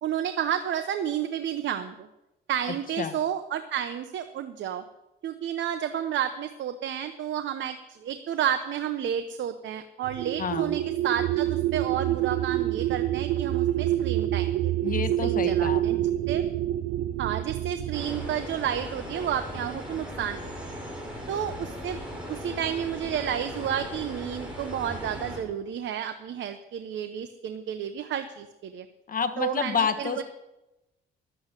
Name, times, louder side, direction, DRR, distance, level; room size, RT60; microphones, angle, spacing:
voice 1, 0.0-2.1 2.5-4.8 5.2-14.9 15.2-16.0 16.3-16.4 17.2-20.8 21.3-22.0 22.3-28.9 29.4-30.2, right 9 dB, 70° right, 8 dB, 0.9 m, -31 dB
voice 2, 2.7-3.2 10.4-10.8 14.8-16.1 29.1-30.2, left 6 dB, 45° left, 8 dB, 1.4 m, -29 dB
sound 1, 10.0-18.4, right 13 dB, 85° right, 0.5 m, -27 dB
sound 2, 17.9-25.4, equal, 5° right, 6.0 m, -38 dB
12.0 x 8.0 x 9.0 m, 0.96 s
cardioid pair, 90°, 20 cm